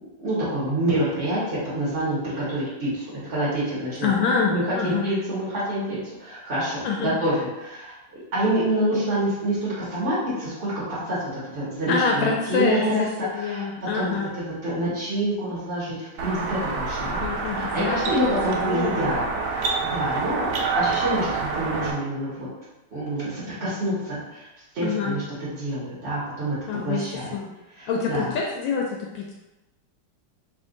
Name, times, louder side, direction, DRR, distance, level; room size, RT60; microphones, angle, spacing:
voice 1, 0.2-4.1 4.5-13.7 13.9-17.3 17.5-20.5 20.7-22.5 22.9-24.5 24.7-26.6 26.8-27.3 27.7-28.3, right 1 dB, 40° right, -9 dB, 1.0 m, -27 dB
voice 2, 4.0-5.1 6.8-7.1 11.9-14.4 17.0-18.0 18.5-19.3 24.8-25.2 26.7-27.0 27.3-27.5 27.8-29.3, left 5 dB, 75° left, -1 dB, 1.2 m, -26 dB
sound 1, 16.2-21.9, right 4 dB, 75° right, 1.2 m, -27 dB
3.4 x 2.5 x 3.8 m, 1.0 s
omnidirectional pair, 2.4 m